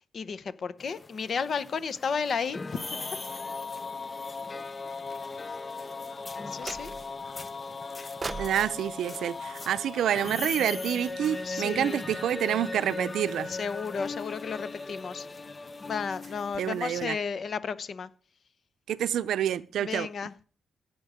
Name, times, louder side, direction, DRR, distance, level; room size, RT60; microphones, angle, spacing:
voice 1, 0.0-2.8 3.1-3.2 6.5-6.9 11.4-12.0 13.5-15.3 15.8-18.1 19.8-20.4, left 6 dB, 50° left, 0.9 m, -33 dB
sound 1, 0.8-17.1, left 3 dB, 25° left, 0.6 m, -38 dB
sound 2, 6.6-7.3 8.2-10.4, right 4 dB, 25° right, 0.7 m, -41 dB
voice 2, 8.4-13.5 16.6-17.2 18.9-20.1, right 10 dB, 90° right, 0.6 m, -28 dB
16.5 x 8.0 x 5.0 m
wide cardioid pair, 140°, 0 cm